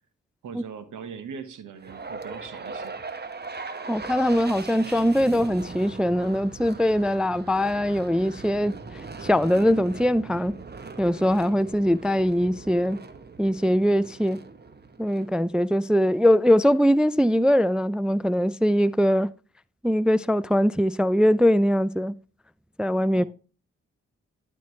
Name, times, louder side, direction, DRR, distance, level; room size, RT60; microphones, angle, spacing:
voice 1, 0.4-3.0 23.1-23.2, right 6 dB, 70° right, 1.2 m, -40 dB
sound 1, 1.8-16.0, right 4 dB, 30° right, 1.0 m, -40 dB
voice 2, 3.9-10.5 11.0-13.0 13.4-14.4 15.0-19.3 19.8-22.1 22.8-23.2, equal, 5° right, 0.3 m, -22 dB
12.0 x 4.5 x 3.1 m
supercardioid pair, 40°, 31 cm